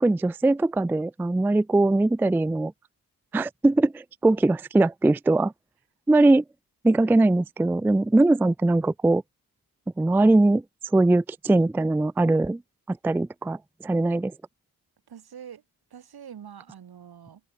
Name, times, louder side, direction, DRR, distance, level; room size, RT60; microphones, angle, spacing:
voice 1, 0.0-2.7 3.3-5.5 6.1-6.4 6.8-9.2 10.0-10.6 10.9-12.6 12.9-13.6 13.8-14.3, right 2 dB, 5° right, 0.3 m, -21 dB
voice 2, 15.1-15.6 15.9-17.4, right 8 dB, 75° right, 6.1 m, -44 dB
open air
cardioid pair, 55°, 38 cm